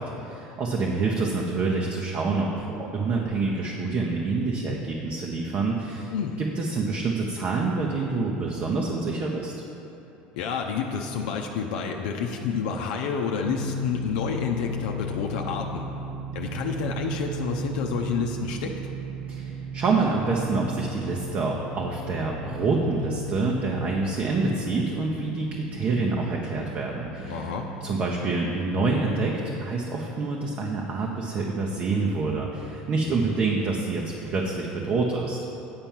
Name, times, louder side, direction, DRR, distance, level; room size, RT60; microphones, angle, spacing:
voice 1, 0.0-9.5 19.3-27.5 27.8-35.6, right 3 dB, 45° right, -1 dB, 1.0 m, -27 dB
voice 2, 6.1-6.4 10.3-15.9 16.3-18.8 27.3-27.7 33.1-33.2, left 6 dB, 75° left, 1 dB, 0.6 m, -29 dB
sound 1, 13.4-28.1, right 2 dB, 70° right, 0.6 m, -36 dB
8.8 x 4.4 x 7.3 m, 2.9 s
hypercardioid pair, 85°, 4 cm